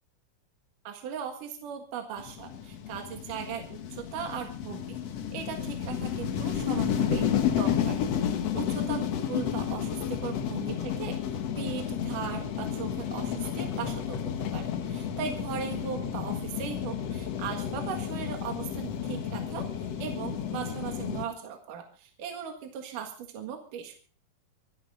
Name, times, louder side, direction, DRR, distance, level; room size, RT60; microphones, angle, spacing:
voice 1, 0.8-3.6 3.9-5.0 5.3-7.3 7.6-8.0 8.5-14.2 14.5-24.0, right 8 dB, 65° right, 4 dB, 3.2 m, -38 dB
sound 1, 2.2-21.2, left 9 dB, 60° left, 1.8 m, -31 dB
25.5 x 11.0 x 3.8 m, 0.40 s
omnidirectional pair, 4.2 m